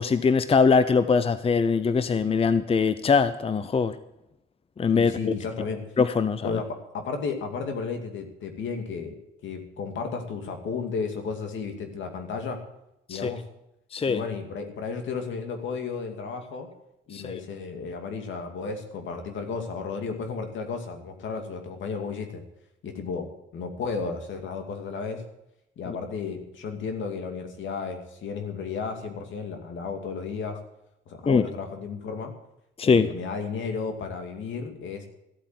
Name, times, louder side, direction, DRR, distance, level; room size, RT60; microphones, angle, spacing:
voice 1, 0.0-3.9 4.8-5.1 6.0-6.5 13.1-13.3 13.9-14.2 17.1-17.4 25.9-26.0 31.3-31.4 32.8-33.1, left 5 dB, 30° left, 13 dB, 0.7 m, -22 dB
voice 2, 4.9-5.8 6.4-9.2 9.4-12.6 13.1-13.4 14.1-16.7 17.1-22.4 22.8-23.3 23.5-25.2 25.8-30.6 31.1-32.3 32.8-35.1, left 5 dB, 75° left, 5 dB, 2.4 m, -33 dB
14.5 x 8.9 x 7.6 m, 0.85 s
cardioid pair, 90°, 20 cm